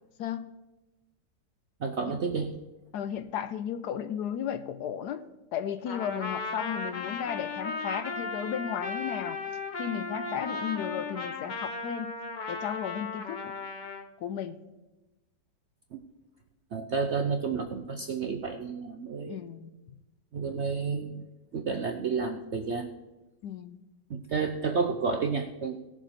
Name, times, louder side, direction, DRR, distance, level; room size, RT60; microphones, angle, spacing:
voice 1, 1.8-2.5 15.9-16.0 16.7-19.4 20.3-21.3 21.5-22.9 24.1-25.8, right 5 dB, 65° right, 5 dB, 0.7 m, -31 dB
voice 2, 2.9-9.4 9.8-12.2 12.5-13.5 14.2-14.6 19.3-19.7 23.4-23.8, left 9 dB, 75° left, 11 dB, 1.1 m, -34 dB
Trumpet, 5.9-14.1, left 3 dB, 45° left, 0.6 m, -36 dB
17.0 x 7.0 x 4.2 m, 1.0 s
omnidirectional pair, 1.9 m